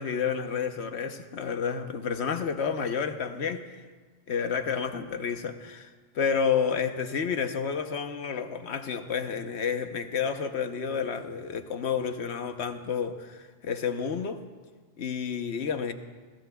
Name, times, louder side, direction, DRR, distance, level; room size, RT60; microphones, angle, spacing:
voice 1, 0.0-3.8 4.3-14.4 15.0-15.9, left 6 dB, 80° left, 8 dB, 1.2 m, -30 dB
27.5 x 19.5 x 2.3 m, 1.4 s
omnidirectional pair, 1.1 m